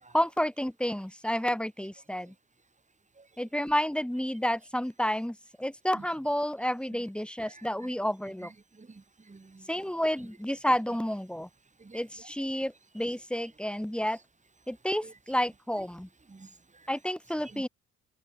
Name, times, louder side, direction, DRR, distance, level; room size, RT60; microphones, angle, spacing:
voice 1, 0.1-2.3 3.4-8.5 9.7-11.5 11.9-14.2 14.7-16.1 16.9-17.7, equal, 5° left, 1.9 m, -30 dB
voice 2, 8.7-9.7 11.8-12.0 15.0-15.1 16.3-16.9 17.5-17.6, right 3 dB, 20° right, 4.0 m, -50 dB
open air
figure-of-eight pair, 45°, 36 cm